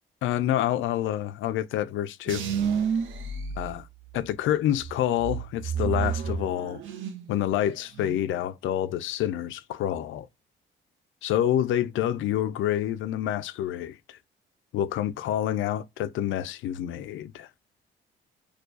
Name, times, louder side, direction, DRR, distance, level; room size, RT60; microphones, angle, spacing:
voice 1, 0.2-2.4 3.6-3.8 4.1-6.8 7.3-10.3 11.2-14.2 14.7-17.5, left 11 dB, 75° left, 0.4 m, -27 dB
sound 1, 2.3-4.3 4.8-7.4 7.7-8.2, right 6 dB, 80° right, 0.6 m, -30 dB
4.5 x 2.3 x 2.4 m
cardioid pair, 90°, 20 cm